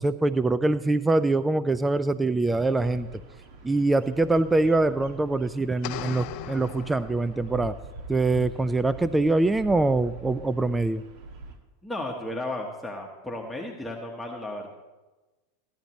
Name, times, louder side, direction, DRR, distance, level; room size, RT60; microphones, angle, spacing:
voice 1, 0.0-3.1 3.6-7.8 8.1-11.0, right 2 dB, 10° right, 14 dB, 0.4 m, -24 dB
Bird vocalization bird call bird song, 2.6-11.6, right 2 dB, 55° right, 1.8 m, -43 dB
sound 1, 5.8-7.8, left 13 dB, 55° left, 0.5 m, -38 dB
voice 2, 11.8-14.7, left 1 dB, 5° left, -1 dB, 1.3 m, -34 dB
15.5 x 11.5 x 3.1 m, 1.2 s
hypercardioid pair, 105°, 0 cm